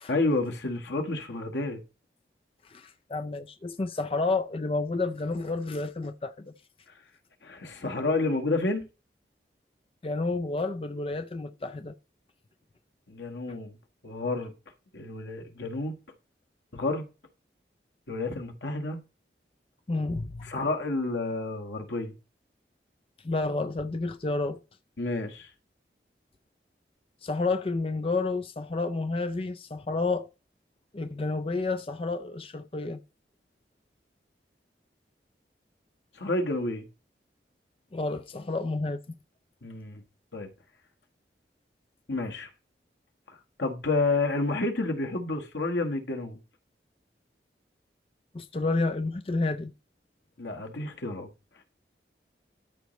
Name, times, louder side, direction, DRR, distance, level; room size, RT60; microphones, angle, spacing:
voice 1, 0.1-1.8 7.4-8.9 13.1-13.8 14.0-14.5 14.9-15.9 16.7-17.1 18.1-19.0 20.4-22.1 25.0-25.5 36.1-36.9 39.6-40.0 40.3-40.5 42.1-42.5 43.3-46.4 50.4-51.3, left 2 dB, 90° left, 1.5 m, -30 dB
voice 2, 2.6-6.5 10.0-11.9 19.9-20.5 23.2-24.6 27.2-30.3 30.9-33.0 37.9-39.0 48.3-49.7, left 3 dB, 30° left, 0.4 m, -30 dB
13.0 x 5.2 x 3.1 m
head